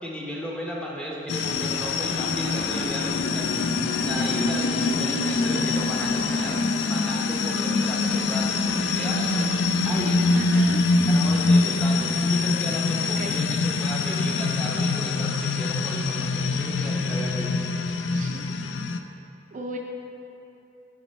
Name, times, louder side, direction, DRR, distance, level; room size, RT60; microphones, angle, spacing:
voice 1, 0.0-3.7 4.0-6.6 6.9-9.5 9.9-10.2 11.1-17.6, equal, 5° left, -4 dB, 0.8 m, -35 dB
sound 1, 1.3-19.0, left 3 dB, 75° left, 0.3 m, -24 dB
sound 2, 1.5-6.6, equal, 35° left, 1.5 m, -41 dB
voice 2, 10.3-10.8 13.0-13.3 18.1-18.4 19.5-19.8, right 2 dB, 45° right, 1 dB, 0.4 m, -34 dB
7.2 x 4.3 x 4.2 m, 3.0 s
head